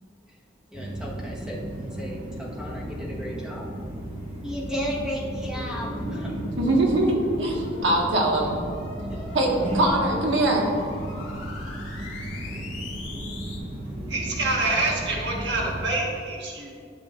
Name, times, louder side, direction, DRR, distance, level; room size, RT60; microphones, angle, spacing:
voice 1, 0.7-1.6 1.9-3.7 4.4-6.3 7.8-7.9 9.1-9.2, equal, 5° right, -4 dB, 1.2 m, -34 dB
sound 1, 0.7-15.9, right 1 dB, 30° right, 1.0 m, -34 dB
sound 2, 5.4-13.6, left 1 dB, 90° left, 2.0 m, -39 dB
voice 2, 6.6-8.6 9.3-10.7, right 1 dB, 85° right, -1 dB, 1.4 m, -22 dB
voice 3, 14.1-16.7, right 2 dB, 70° right, -2 dB, 1.3 m, -26 dB
12.5 x 6.1 x 2.4 m, 2.3 s
head